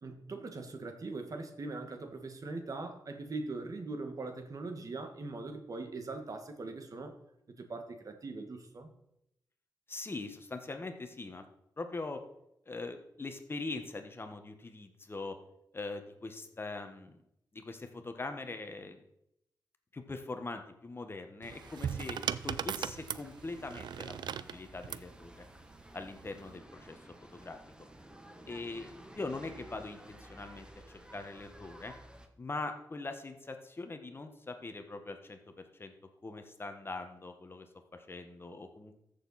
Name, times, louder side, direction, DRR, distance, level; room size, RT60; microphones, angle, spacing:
voice 1, 0.0-7.1 7.6-8.9, right 3 dB, 50° right, 6 dB, 1.6 m, -41 dB
voice 2, 9.9-11.4 11.8-12.2 12.7-15.4 15.7-17.2 17.5-19.0 19.9-25.3 25.9-27.6 28.5-31.9 32.4-35.4 35.7-35.9 36.2-37.7 37.9-39.0, left 3 dB, 30° left, 7 dB, 1.3 m, -42 dB
sound 1, 21.4-32.3, right 1 dB, 10° right, 1.2 m, -54 dB
sound 2, 21.4-25.1 26.1-26.5, right 9 dB, 90° right, 0.4 m, -38 dB
14.5 x 6.8 x 4.2 m, 0.80 s
cardioid pair, 85°, 7 cm